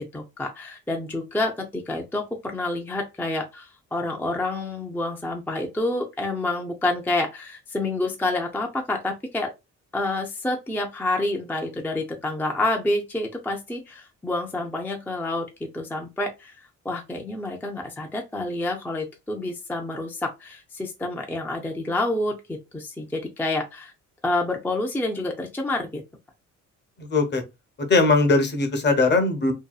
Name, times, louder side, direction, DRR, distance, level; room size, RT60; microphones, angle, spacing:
voice 1, 0.0-9.5 9.9-15.5 15.7-23.9 24.2-26.0, left 2 dB, 5° left, 0.4 m, -28 dB
voice 2, 27.0-27.4 27.8-29.5, left 3 dB, 35° left, 0.8 m, -20 dB
2.7 x 2.2 x 2.3 m
cardioid pair, 90°, 30 cm